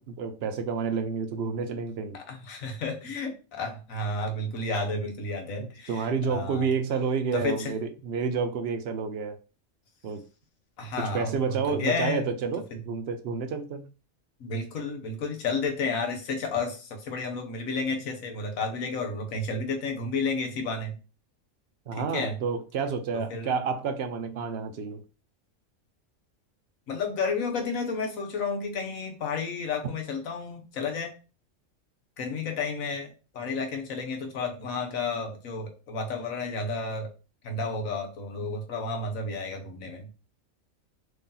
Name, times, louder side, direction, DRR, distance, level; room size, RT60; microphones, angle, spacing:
voice 1, 0.0-2.2 5.6-9.4 10.0-10.2 11.1-13.9 21.9-25.0, right 5 dB, 65° right, 0.7 m, -30 dB
voice 2, 2.1-6.7 7.3-7.7 10.8-12.2 14.4-21.0 21.9-22.4 23.1-23.5 26.9-31.1 32.2-37.1 37.4-40.1, left 3 dB, 90° left, 1.3 m, -31 dB
3.2 x 2.7 x 3.7 m
omnidirectional pair, 1.4 m